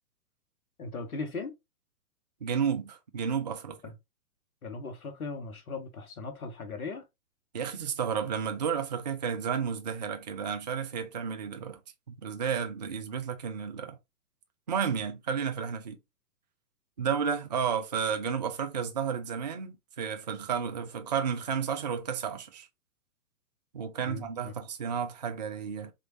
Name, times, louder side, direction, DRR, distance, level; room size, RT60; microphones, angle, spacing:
voice 1, 0.8-1.5 3.8-3.9 4.6-7.0 24.0-24.5, left 4 dB, 65° left, 1.3 m, -38 dB
voice 2, 2.4-3.9 7.5-11.8 12.1-14.0 14.7-16.0 17.0-22.7 23.7-25.9, right 7 dB, 30° right, 0.4 m, -32 dB
3.6 x 3.1 x 2.9 m
figure-of-eight pair, 115°, 45 cm